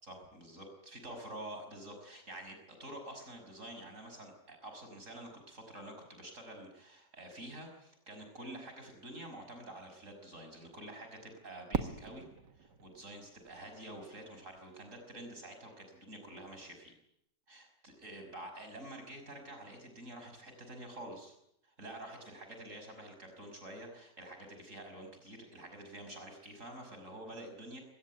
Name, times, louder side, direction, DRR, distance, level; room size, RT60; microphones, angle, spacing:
voice 1, 0.0-12.3 12.6-16.9 17.5-21.4 21.6-27.8, right 1 dB, 45° right, 5 dB, 6.2 m, -48 dB
Fireworks, 11.7-14.6, right 6 dB, 75° right, 2.3 m, -41 dB
24.0 x 21.0 x 9.4 m, 0.77 s
omnidirectional pair, 1.9 m